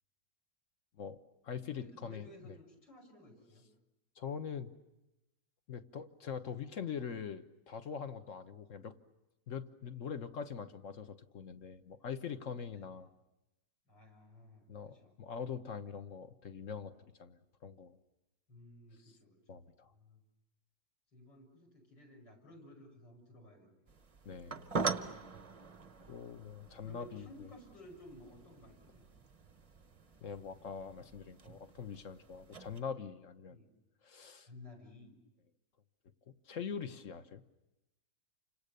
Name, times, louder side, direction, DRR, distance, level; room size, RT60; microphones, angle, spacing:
voice 1, 0.9-2.5 4.1-4.7 5.7-9.0 9.5-13.1 14.7-18.0 19.5-19.9 24.2-24.8 26.1-27.5 30.2-33.6 34.0-34.5 36.3-37.4, left 7 dB, 45° left, 9 dB, 1.4 m, -43 dB
voice 2, 1.6-3.7 12.7-12.8 13.9-15.1 18.5-20.2 21.1-23.8 26.8-29.0 33.5-33.7 34.4-35.2, left 1 dB, 70° left, 1 dB, 7.0 m, -56 dB
sound 1, 23.9-32.8, right 4 dB, 30° right, 0.6 m, -43 dB
30.0 x 26.0 x 6.8 m, 0.97 s
omnidirectional pair, 2.0 m